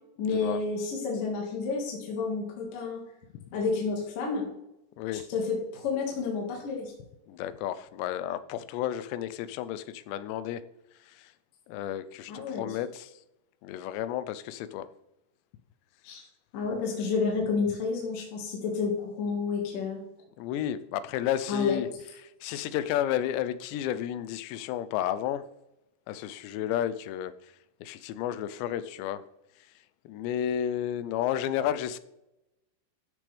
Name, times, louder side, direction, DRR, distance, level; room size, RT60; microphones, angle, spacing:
voice 1, 0.2-3.0 3.5-4.5 5.3-6.9 12.3-12.8 16.0-16.2 16.5-20.0 21.5-21.8, left 4 dB, 55° left, -2 dB, 3.3 m, -30 dB
voice 2, 7.3-10.6 11.1-11.3 11.7-13.1 13.6-14.9 20.4-21.9 22.4-25.4 26.1-27.3 27.8-29.2 30.1-32.0, left 11 dB, 85° left, 13 dB, 2.9 m, -32 dB
13.5 x 8.4 x 3.5 m, 0.89 s
omnidirectional pair, 4.9 m